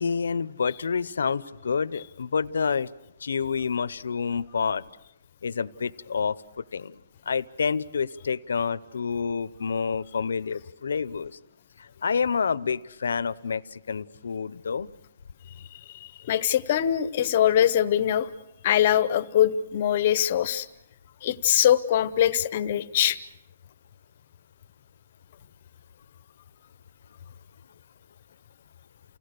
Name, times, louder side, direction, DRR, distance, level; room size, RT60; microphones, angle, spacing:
voice 1, 0.0-2.9 3.2-4.8 5.4-7.0 7.3-11.4 11.8-14.9, left 6 dB, 85° left, 16 dB, 0.7 m, -28 dB
voice 2, 15.7-18.3 18.6-20.7 21.2-23.2, left 10 dB, 35° left, 12 dB, 0.8 m, -23 dB
29.0 x 17.0 x 6.7 m, 0.92 s
hypercardioid pair, 175°, 0 cm